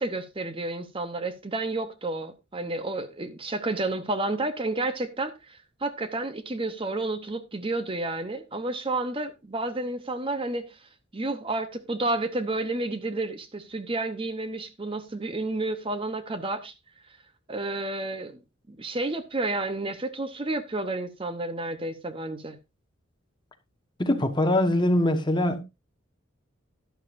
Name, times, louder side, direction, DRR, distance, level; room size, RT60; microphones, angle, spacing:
voice 1, 0.0-10.8 11.1-16.7 17.5-18.4 18.7-22.6, right 2 dB, 25° right, 0.8 m, -31 dB
voice 2, 24.0-25.6, left 1 dB, 20° left, 1.2 m, -23 dB
12.0 x 11.5 x 2.6 m
head